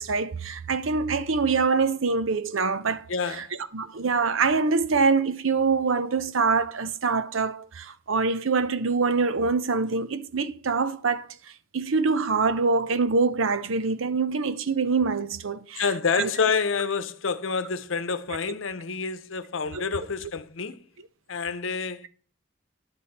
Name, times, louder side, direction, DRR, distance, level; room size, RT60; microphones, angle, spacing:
voice 1, 0.0-3.0 3.4-3.5 3.7-11.3 11.7-15.8 16.2-16.3 19.7-19.8, right 4 dB, 90° right, 0.7 m, -24 dB
voice 2, 3.1-3.5 15.8-20.8 21.3-22.1, left 5 dB, 85° left, 0.8 m, -28 dB
10.5 x 7.7 x 4.2 m
head